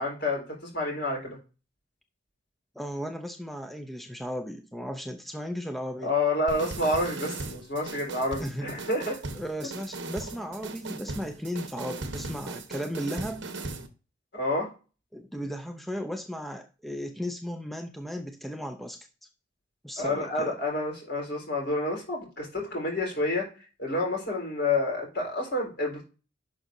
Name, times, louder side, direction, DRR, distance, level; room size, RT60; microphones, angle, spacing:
voice 1, 0.0-1.4 6.0-9.2 14.3-14.7 20.0-23.5 23.8-26.0, left 2 dB, 55° left, -1 dB, 4.4 m, -29 dB
voice 2, 2.8-6.1 8.4-8.7 9.3-13.5 15.1-19.1 19.8-20.6, equal, ahead, 6 dB, 0.5 m, -35 dB
sound 1, 6.5-13.9, right 3 dB, 65° right, 1.2 m, -38 dB
11.0 x 5.8 x 2.7 m, 0.33 s
head